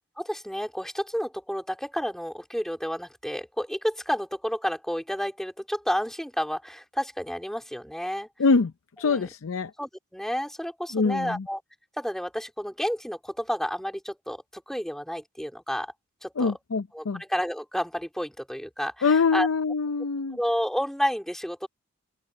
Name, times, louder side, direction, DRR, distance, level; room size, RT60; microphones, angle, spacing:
voice 1, 0.2-8.3 9.0-9.3 9.8-11.6 12.0-15.9 16.2-16.6 16.9-19.5 20.3-21.7, equal, ahead, 3.1 m, -31 dB
voice 2, 8.4-8.7 9.0-9.7 10.9-11.5 16.4-17.2 19.0-20.4, left 4 dB, 75° left, 0.6 m, -24 dB
head